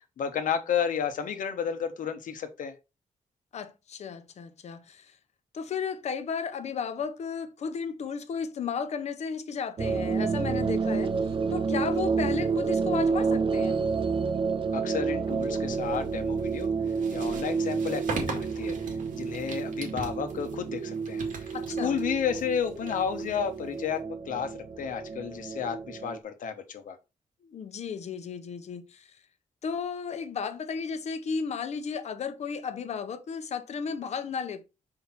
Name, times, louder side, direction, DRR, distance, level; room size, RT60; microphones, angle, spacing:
voice 1, 0.2-2.7 14.7-16.7 17.1-18.8 19.1-21.5 21.8-27.0, left 7 dB, 85° left, 1.2 m, -32 dB
voice 2, 3.5-5.1 5.5-11.1 11.5-13.8 21.5-22.0 27.4-29.1 29.6-34.6, left 6 dB, 55° left, 0.9 m, -34 dB
sound 1, 9.8-26.2, right 5 dB, 40° right, 0.6 m, -29 dB
sound 2, 15.3-24.0, right 4 dB, 90° right, 2.1 m, -41 dB
5.9 x 5.0 x 4.3 m
wide cardioid pair, 165°, 13 cm